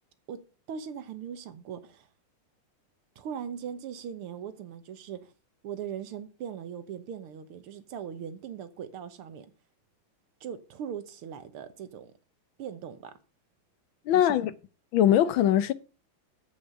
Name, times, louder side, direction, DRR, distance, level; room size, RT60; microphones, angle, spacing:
voice 1, 0.7-2.1 3.2-5.3 5.6-9.5 10.4-12.1 12.6-13.1 14.1-14.4, right 8 dB, 80° right, 2.0 m, -39 dB
voice 2, 14.1-14.5 14.9-15.7, left 11 dB, 70° left, 1.4 m, -21 dB
8.2 x 7.1 x 6.7 m
omnidirectional pair, 2.4 m